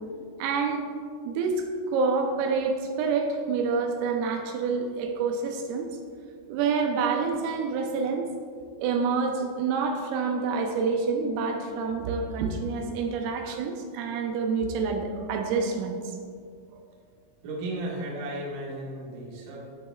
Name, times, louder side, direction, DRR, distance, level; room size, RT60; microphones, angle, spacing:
voice 1, 0.4-0.9 1.3-5.9 6.5-8.3 8.8-16.0, right 4 dB, 85° right, 3 dB, 3.3 m, -27 dB
voice 2, 17.4-19.6, right 1 dB, 55° right, -4 dB, 2.5 m, -34 dB
12.5 x 7.9 x 2.4 m, 2.1 s
omnidirectional pair, 5.8 m